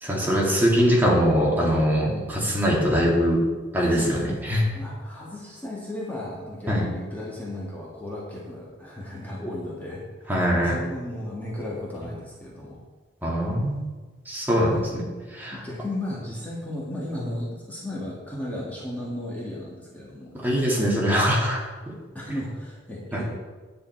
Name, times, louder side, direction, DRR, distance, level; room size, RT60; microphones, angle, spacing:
voice 1, 0.0-3.4 3.7-4.6 6.7-6.8 10.3-10.8 13.2-13.9 14.3-15.0 15.3-15.6 20.4-21.6 23.1-23.2, equal, 10° right, -4 dB, 2.1 m, -22 dB
voice 2, 3.9-4.5 4.7-12.8 14.7-15.0 15.5-20.3 22.1-23.3, left 1 dB, 10° left, -5 dB, 1.8 m, -35 dB
10.5 x 8.7 x 4.5 m, 1.3 s
head